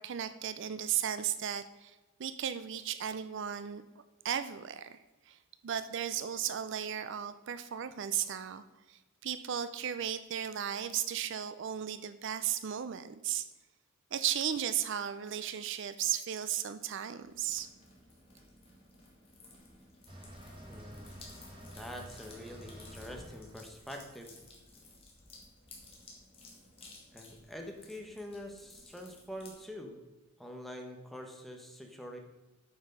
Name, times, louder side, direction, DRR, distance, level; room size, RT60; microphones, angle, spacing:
voice 1, 0.0-1.9 2.2-5.0 5.3-5.4 5.6-8.6 8.9-13.4 14.1-17.7, right 9 dB, 60° right, 12 dB, 0.4 m, -35 dB
sound 1, 17.2-29.6, left 2 dB, 30° left, 2.3 m, -56 dB
sound 2, 20.1-25.0, equal, 25° right, 2.2 m, -51 dB
voice 2, 20.6-21.2 21.7-24.3 27.1-30.0 30.4-32.2, equal, ahead, 2 dB, 1.1 m, -45 dB
8.6 x 6.1 x 5.4 m, 1.1 s
head